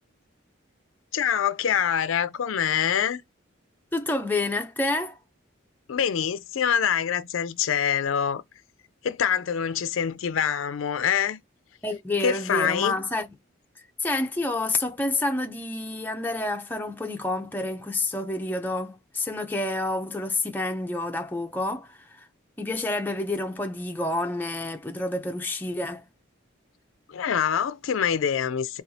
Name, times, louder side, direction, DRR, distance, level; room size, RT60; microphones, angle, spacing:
voice 1, 1.1-3.2 5.9-8.4 9.0-11.4 12.2-13.0 27.1-28.8, left 8 dB, 90° left, 0.4 m, -25 dB
voice 2, 3.9-5.2 11.8-13.3 14.0-22.3 22.6-26.0, left 2 dB, 10° left, 0.5 m, -29 dB
4.2 x 2.3 x 2.7 m
head